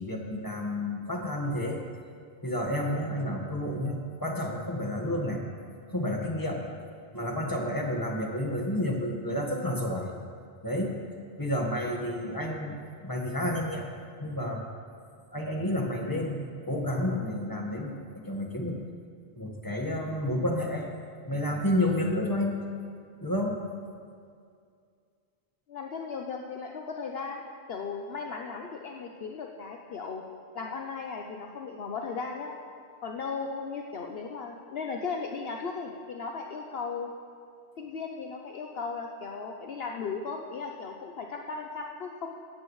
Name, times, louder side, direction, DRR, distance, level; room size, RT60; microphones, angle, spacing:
voice 1, 0.0-1.8 2.4-5.4 5.9-6.6 7.1-10.1 10.6-11.0 11.4-13.9 14.2-14.6 15.3-18.8 19.3-20.9 21.2-22.6 23.2-23.6, left 1 dB, 20° left, 0 dB, 1.5 m, -30 dB
voice 2, 25.7-27.4 27.7-30.2 30.5-32.5 33.0-37.1 37.8-42.4, left 5 dB, 60° left, 1 dB, 1.0 m, -36 dB
17.0 x 14.0 x 3.2 m, 2.3 s
omnidirectional pair, 1.2 m